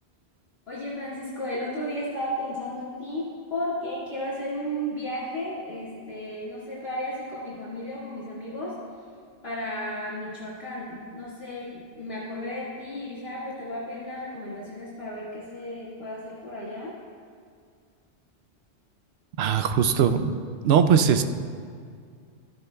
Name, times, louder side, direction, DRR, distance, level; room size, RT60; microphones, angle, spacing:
voice 1, 0.7-8.8 9.4-17.0, equal, 60° left, -9 dB, 2.3 m, -34 dB
voice 2, 19.4-20.4 20.6-21.2, right 7 dB, 70° right, 9 dB, 0.8 m, -20 dB
15.0 x 13.0 x 2.3 m, 2.2 s
omnidirectional pair, 1.1 m